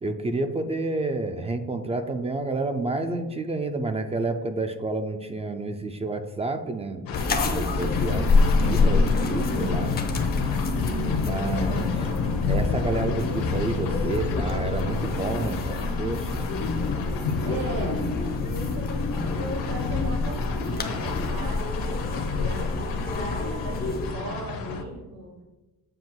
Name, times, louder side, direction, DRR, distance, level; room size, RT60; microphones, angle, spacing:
voice 1, 0.0-7.1 7.5-9.9 11.2-12.1 12.5-16.4, right 2 dB, 20° right, 7 dB, 0.3 m, -29 dB
sound 1, 7.1-24.8, left 5 dB, 80° left, 1.0 m, -30 dB
sound 2, 7.1-24.1, left 3 dB, 25° left, 0.7 m, -27 dB
voice 2, 17.4-21.9 22.3-25.3, right 1 dB, 85° right, 0 dB, 1.9 m, -38 dB
7.7 x 7.5 x 2.3 m, 1.1 s
cardioid pair, 160°, 34 cm